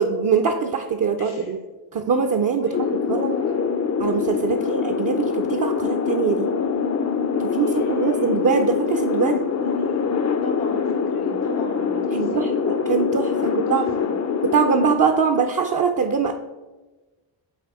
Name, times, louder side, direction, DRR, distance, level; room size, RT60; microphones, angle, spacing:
voice 1, 0.0-1.6 1.9-3.3 4.0-6.5 7.4-9.4 12.1-12.5 12.9-13.8 14.5-16.3, right 6 dB, 40° right, 5 dB, 0.6 m, -22 dB
voice 2, 1.2-1.7 2.6-3.7 4.5-4.9 7.5-8.7 9.2-10.1 10.4-12.6 13.4-14.1, left 1 dB, 90° left, 1 dB, 1.7 m, -37 dB
sound 1, 2.7-14.9, left 6 dB, 35° left, 0.5 m, -24 dB
7.8 x 3.4 x 4.7 m, 1.2 s
cardioid pair, 60°, 49 cm